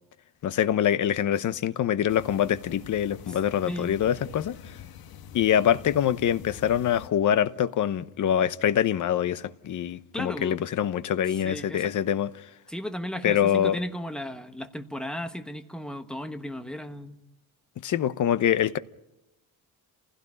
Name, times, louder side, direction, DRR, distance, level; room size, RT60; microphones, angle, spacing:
voice 1, 0.4-4.5 5.3-12.4 13.2-13.8 17.8-18.8, left 10 dB, 55° left, 0.9 m, -25 dB
sound 1, 2.1-7.1, left 9 dB, 85° left, 1.3 m, -45 dB
voice 2, 3.7-4.0 10.1-10.6 11.3-11.9 12.7-17.1, left 1 dB, ahead, 1.2 m, -35 dB
28.5 x 16.5 x 9.9 m
wide cardioid pair, 170°, 35 cm